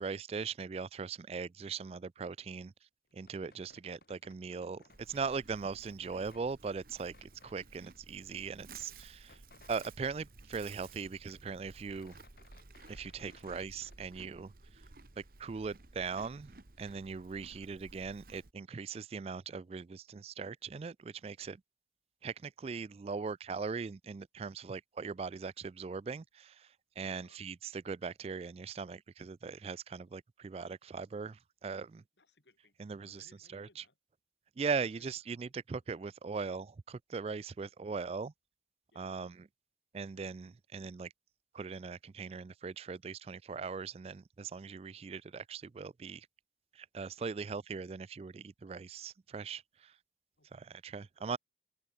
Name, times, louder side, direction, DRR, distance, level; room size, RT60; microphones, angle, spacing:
voice 1, 0.0-2.7 3.2-4.8 5.1-8.9 9.7-12.1 12.9-14.5 15.4-16.5 16.8-21.6 22.2-26.2 27.0-31.4 31.6-32.0 32.8-33.2 33.5-33.7 34.6-38.3 39.0-39.3 39.9-41.1 41.5-46.2 46.9-49.6 50.8-51.4, right 5 dB, 35° right, 0.3 m, -39 dB
sound 1, 3.1-5.1 5.4-6.5 7.1-7.6 8.0-8.1 8.3-10.2 10.5-11.4 11.7-14.1, left 3 dB, 55° left, 2.4 m, -62 dB
Livestock farm animals working animals, 4.9-18.5, right 3 dB, 55° right, 1.3 m, -55 dB
voice 2, 27.0-27.4 32.1-34.0 34.7-35.1 35.7-36.2 37.5-37.6 38.9-39.1 50.4-50.7 51.0-51.3, left 2 dB, 80° left, 6.3 m, -68 dB
open air
head